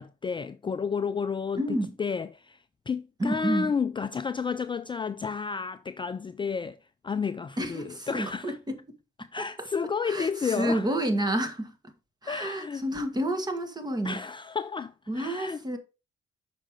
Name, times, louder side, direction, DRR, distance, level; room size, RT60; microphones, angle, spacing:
voice 1, 0.0-2.6 2.9-6.8 7.0-8.6 9.3-10.9 12.2-12.8 14.0-15.6, left 5 dB, 25° left, 0.4 m, -31 dB
voice 2, 1.6-1.9 3.2-3.7 7.6-8.8 10.1-11.7 12.2-14.2 15.1-15.8, right 1 dB, 20° right, 1.6 m, -29 dB
6.6 x 5.0 x 4.8 m
cardioid pair, 90°, 20 cm